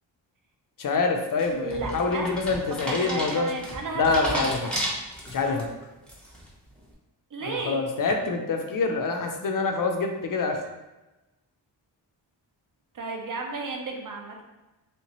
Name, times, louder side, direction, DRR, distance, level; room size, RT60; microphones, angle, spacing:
voice 1, 0.8-3.5 3.9-4.6 5.3-5.7 7.4-10.6, left 4 dB, 45° left, 4 dB, 0.5 m, -26 dB
sound 1, 1.4-5.6 6.1-6.5, equal, ahead, 0.7 m, -32 dB
voice 2, 1.5-2.3 2.9-4.5 5.4-5.6 7.3-7.8 12.9-14.4, right 3 dB, 45° right, 1 dB, 0.6 m, -33 dB
3.1 x 2.9 x 3.0 m, 1.0 s
wide cardioid pair, 140°, 46 cm